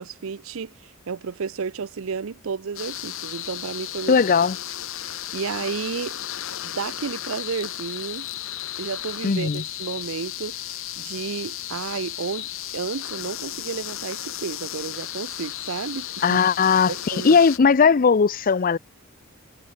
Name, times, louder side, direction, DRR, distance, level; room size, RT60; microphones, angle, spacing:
voice 1, 0.0-4.2 5.0-6.2 6.6-8.3 8.8-10.6 11.0-12.5 12.7-16.4 16.9-17.4, right 5 dB, 65° right, 0.5 m, -32 dB
sound 1, 2.8-17.6, left 13 dB, 65° left, 1.0 m, -34 dB
voice 2, 4.1-4.6 9.2-9.6 16.2-18.8, left 5 dB, 40° left, 0.5 m, -18 dB
head